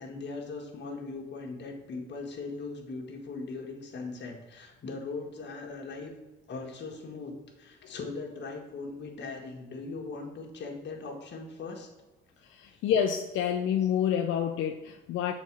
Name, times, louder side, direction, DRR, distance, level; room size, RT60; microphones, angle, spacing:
voice 1, 0.0-6.1 6.5-11.9 12.7-12.8, left 3 dB, 60° left, 2 dB, 1.7 m, -39 dB
voice 2, 12.5-15.3, left 9 dB, 90° left, 4 dB, 0.5 m, -28 dB
6.9 x 4.2 x 6.0 m, 1.1 s
cardioid pair, 90°, 20 cm